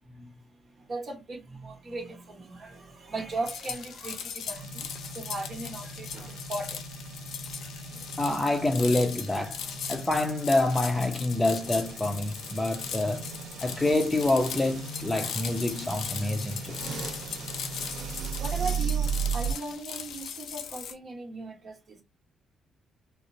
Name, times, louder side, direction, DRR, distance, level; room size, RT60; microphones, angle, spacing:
voice 1, 0.0-6.9 7.4-7.5 7.9-8.1 15.2-15.4 18.4-22.0, right 2 dB, 45° right, 1.1 m, -38 dB
sound 1, 3.5-20.9, left 7 dB, 75° left, 0.5 m, -39 dB
sound 2, 4.5-19.5, right 6 dB, 75° right, 0.9 m, -37 dB
voice 2, 8.2-9.6 9.9-13.2 13.6-16.8, left 2 dB, 15° left, 0.7 m, -27 dB
3.0 x 2.0 x 2.6 m
cardioid pair, 90°, 0 cm